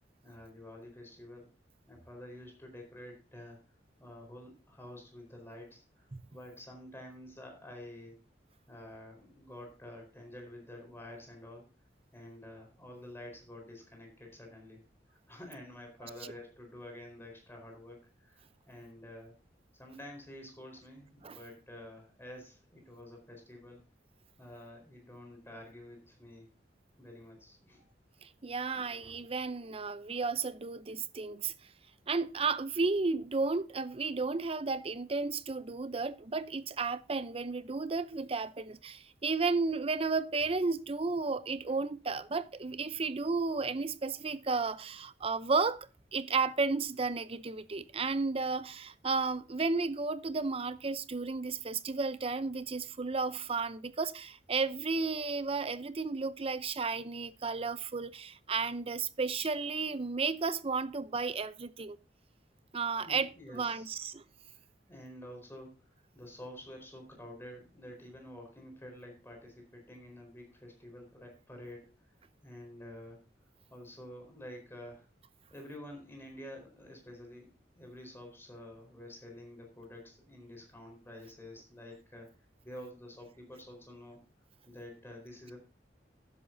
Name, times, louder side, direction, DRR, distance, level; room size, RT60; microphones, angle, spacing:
voice 1, 0.2-1.5 1.9-3.6 4.0-8.2 8.7-11.6 12.1-14.8 15.3-19.3 19.8-23.8 24.4-26.5 27.0-27.8 41.7-41.8 63.0-63.9 64.9-65.7 66.1-71.9 72.4-73.2 73.7-75.0 75.5-77.5 77.7-82.3 82.6-84.2 84.6-85.6, left 1 dB, 15° left, 4.4 m, -49 dB
voice 2, 28.2-31.5 32.1-62.0 62.7-64.2, right 4 dB, 30° right, 0.6 m, -33 dB
12.5 x 10.5 x 2.7 m
head